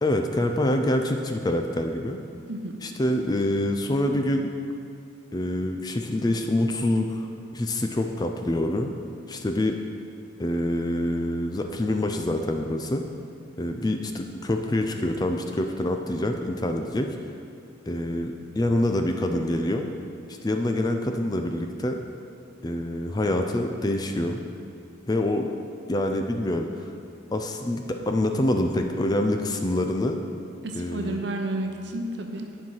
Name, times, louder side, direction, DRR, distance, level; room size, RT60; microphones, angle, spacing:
voice 1, 0.0-2.2 2.8-4.5 5.3-7.3 7.5-8.9 9.3-9.8 10.4-13.1 13.6-17.1 17.9-19.9 20.4-22.0 22.6-24.4 25.1-25.5 25.9-26.9 27.3-30.2 30.7-31.2, left 1 dB, 20° left, 4 dB, 0.4 m, -26 dB
voice 2, 2.5-2.8 30.6-32.6, right 1 dB, 60° right, 3 dB, 0.8 m, -31 dB
10.0 x 4.6 x 5.6 m, 2.4 s
head